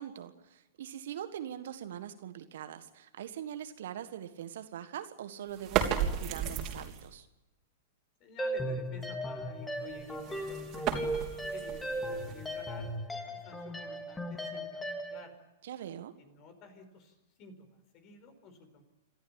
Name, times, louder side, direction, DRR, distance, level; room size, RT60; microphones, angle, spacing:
voice 1, 0.0-7.3 15.6-16.1, right 10 dB, 65° right, 10 dB, 1.6 m, -42 dB
sound 1, 5.5-7.2 9.9-12.8, right 9 dB, 35° right, 3.5 m, -34 dB
voice 2, 8.2-11.3 11.5-15.4 16.2-18.8, left 4 dB, 40° left, 9 dB, 4.7 m, -51 dB
sound 2, 8.4-15.2, right 1 dB, 10° left, 3.0 m, -37 dB
27.5 x 13.5 x 9.0 m, 0.98 s
figure-of-eight pair, 105°, 0 cm